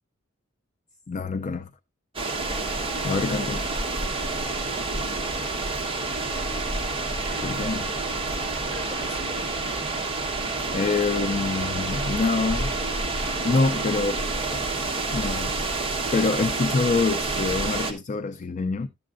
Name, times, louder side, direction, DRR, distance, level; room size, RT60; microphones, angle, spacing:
voice 1, 1.1-1.7 3.0-3.6 7.4-7.8 10.7-12.7 13.4-14.2 14.5-14.6 15.1-15.6 16.1-18.9, left 4 dB, 35° left, 0.4 m, -25 dB
sound 1, 2.1-17.9, right 3 dB, 25° right, 1.2 m, -28 dB
voice 2, 4.8-5.7 6.3-6.8 7.2-8.2 8.7-9.8 13.6-14.2, left 1 dB, 20° left, 5.2 m, -47 dB
11.5 x 7.5 x 2.5 m
head